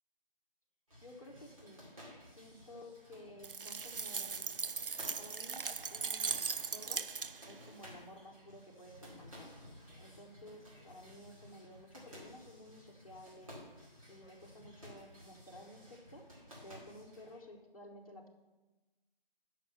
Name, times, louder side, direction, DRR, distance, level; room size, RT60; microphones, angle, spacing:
sound 1, 0.9-17.4, equal, 35° right, 2.3 m, -56 dB
voice 1, 1.0-1.8 2.3-4.5 5.2-6.4 6.7-7.1 7.4-9.5 10.0-13.6 14.1-16.2 16.6-18.3, left 1 dB, 35° left, -2 dB, 1.2 m, -54 dB
sound 2, 3.4-7.6, right 5 dB, 65° right, 0.5 m, -39 dB
6.8 x 6.0 x 7.5 m, 1.1 s
figure-of-eight pair, 165°, 29 cm